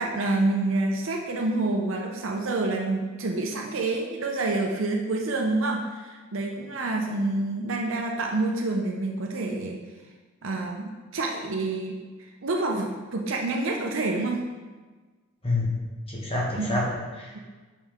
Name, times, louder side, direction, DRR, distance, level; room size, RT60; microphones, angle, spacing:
voice 1, 0.0-9.8 10.4-14.4 16.6-16.8 17.3-17.4, right 2 dB, 70° right, 0 dB, 0.6 m, -28 dB
voice 2, 15.4-15.8 16.1-17.4, left 2 dB, 25° left, -3 dB, 1.2 m, -28 dB
5.5 x 5.3 x 3.5 m, 1.3 s
head